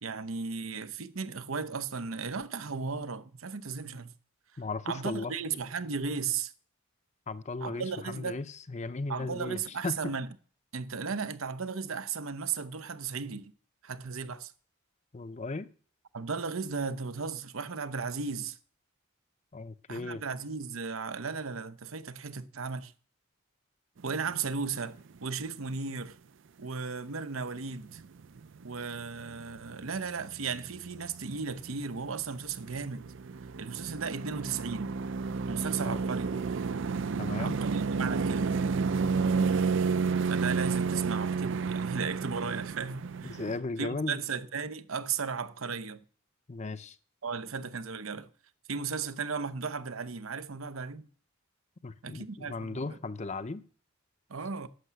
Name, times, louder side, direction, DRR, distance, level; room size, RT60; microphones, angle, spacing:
voice 1, 0.0-4.1 4.9-6.5 7.6-8.4 9.1-10.3 10.7-13.5 13.8-14.5 16.1-18.6 19.9-22.9 24.0-26.2 26.6-28.0 28.6-33.1 33.6-35.0 35.5-36.3 37.3-38.6 40.3-43.4 43.8-46.0 47.2-48.3 48.7-51.1 52.0-53.0 54.3-54.7, right 5 dB, 80° right, 0.9 m, -35 dB
voice 2, 4.6-5.3 7.3-10.1 15.1-15.7 19.5-20.2 35.8-36.0 37.2-37.6 43.3-44.2 46.5-47.0 51.8-53.6, left 3 dB, 35° left, 0.6 m, -36 dB
sound 1, 24.1-24.4 24.7-25.0 25.4-25.5 27.6-27.7 27.9-32.1 32.4-43.6, right 5 dB, 65° right, 0.5 m, -31 dB
11.5 x 7.4 x 8.0 m
head